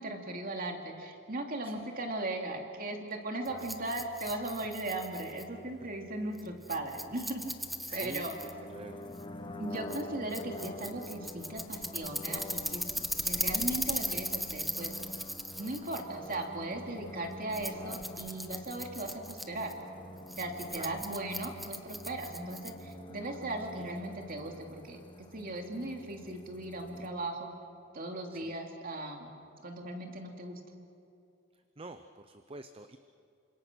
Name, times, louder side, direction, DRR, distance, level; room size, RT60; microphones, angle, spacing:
voice 1, 0.0-7.5 7.9-8.3 9.6-14.9 15.6-19.7 20.4-25.0 25.3-27.5 27.9-29.3 29.6-30.6, right 2 dB, 45° right, 2 dB, 2.9 m, -38 dB
Rattle, 3.5-23.0, equal, ahead, 1.0 m, -39 dB
voice 2, 7.9-9.0 15.6-15.9 19.0-19.2 20.7-20.9 23.7-23.9 28.3-28.6 31.5-33.0, right 2 dB, 30° right, 9 dB, 0.7 m, -48 dB
sound 1, 8.0-27.1, left 1 dB, 25° left, 1.5 m, -47 dB
28.5 x 26.0 x 6.3 m, 2.6 s
head